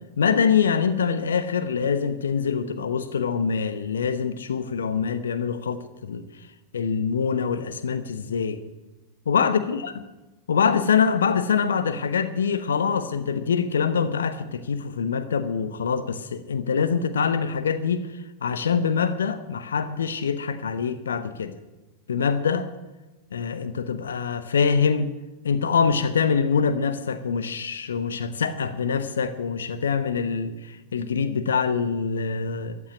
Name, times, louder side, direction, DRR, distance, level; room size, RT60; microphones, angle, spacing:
voice 1, 0.2-6.2 6.7-8.6 9.3-9.9 10.5-18.1 18.4-21.6 22.1-22.7 23.3-25.1 25.4-32.8, left 6 dB, 65° left, 11 dB, 0.9 m, -24 dB
14.5 x 7.3 x 10.0 m, 1.1 s
figure-of-eight pair, 90°, 0 cm